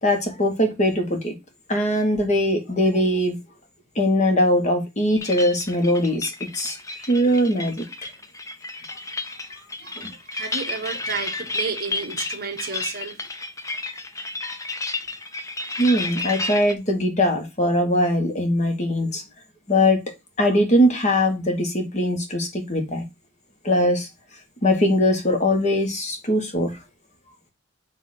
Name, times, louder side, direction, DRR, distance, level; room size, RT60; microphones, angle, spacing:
voice 1, 0.0-1.3 1.7-3.4 3.9-6.8 7.1-8.1 10.0-10.1 15.8-19.2 19.7-20.0 20.4-23.0 23.6-24.1 24.6-26.8, left 1 dB, 35° left, 1.4 m, -21 dB
sound 1, 5.2-16.7, left 3 dB, 15° left, 0.6 m, -32 dB
voice 2, 9.8-13.2, right 5 dB, 50° right, 1.3 m, -32 dB
7.5 x 2.9 x 6.1 m
head